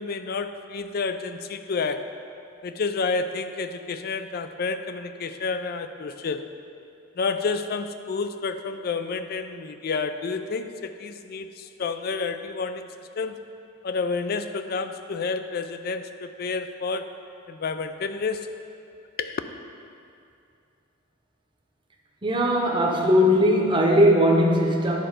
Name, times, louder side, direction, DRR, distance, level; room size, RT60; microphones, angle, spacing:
voice 1, 0.0-2.1 2.6-6.5 7.2-13.3 13.8-17.1 17.5-18.5 19.2-19.4, left 4 dB, 50° left, 10 dB, 0.4 m, -30 dB
voice 2, 22.2-25.0, equal, 25° right, 0 dB, 0.8 m, -19 dB
10.0 x 4.4 x 5.1 m, 2.5 s
head